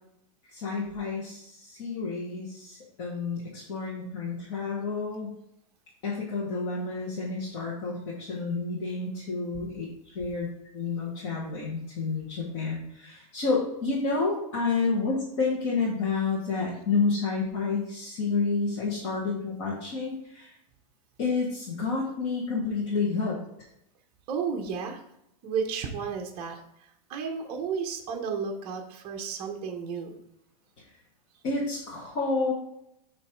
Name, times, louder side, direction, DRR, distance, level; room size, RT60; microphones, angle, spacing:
voice 1, 0.5-5.3 6.0-10.5 10.7-20.5 21.2-23.4 31.4-32.5, left 4 dB, 45° left, -5 dB, 1.5 m, -30 dB
voice 2, 24.3-25.0 25.4-26.6 27.1-30.2, right 6 dB, 25° right, 2 dB, 0.7 m, -32 dB
7.4 x 3.1 x 4.9 m, 0.79 s
supercardioid pair, 170°, 20 cm